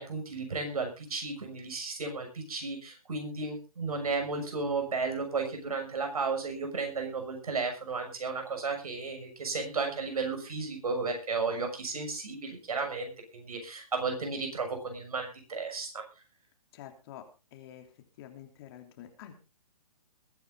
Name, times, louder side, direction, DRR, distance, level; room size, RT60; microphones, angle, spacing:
voice 1, 0.0-16.0, right 4 dB, 70° right, 5 dB, 6.4 m, -34 dB
voice 2, 16.7-17.3 17.5-17.9 18.2-19.3, left 11 dB, 40° left, 4 dB, 3.2 m, -48 dB
21.5 x 9.6 x 3.7 m, 0.32 s
hypercardioid pair, 135°, 20 cm